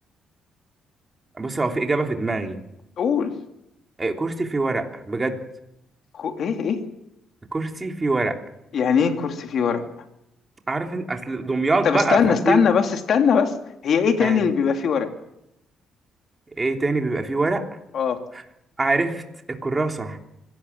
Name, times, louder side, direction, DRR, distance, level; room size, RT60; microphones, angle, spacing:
voice 1, 1.4-2.6 4.0-5.4 7.5-8.4 10.7-12.6 14.2-14.4 16.6-17.7 18.3-18.4 18.8-19.2 19.5-20.2, right 3 dB, 25° right, 3 dB, 3.4 m, -24 dB
voice 2, 3.0-3.3 6.1-6.8 8.7-9.8 11.8-13.5 13.8-15.1 17.9-18.2, left 6 dB, 65° left, 5 dB, 2.9 m, -21 dB
25.0 x 18.0 x 7.4 m, 0.85 s
cardioid pair, 90°, 0 cm